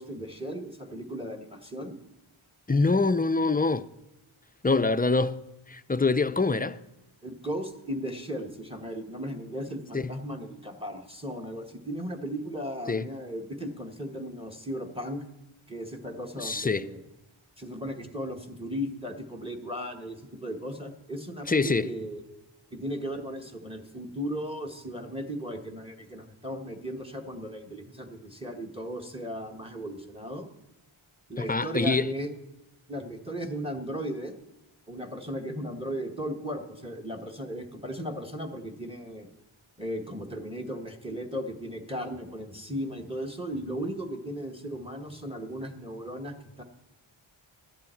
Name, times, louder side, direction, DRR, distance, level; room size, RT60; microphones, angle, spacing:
voice 1, 0.0-2.0 7.2-15.2 15.7-17.0 17.6-22.2 22.7-30.5 31.3-32.3 32.9-34.4 34.9-39.3 39.8-46.6, equal, 10° right, 1.4 m, -36 dB
voice 2, 2.7-3.9 4.6-5.4 5.7-6.8 9.9-10.1 12.9-13.1 16.4-16.9 21.5-21.9 31.4-32.1, left 3 dB, 20° left, 0.4 m, -25 dB
13.5 x 11.0 x 4.5 m
wide cardioid pair, 45°, 50 cm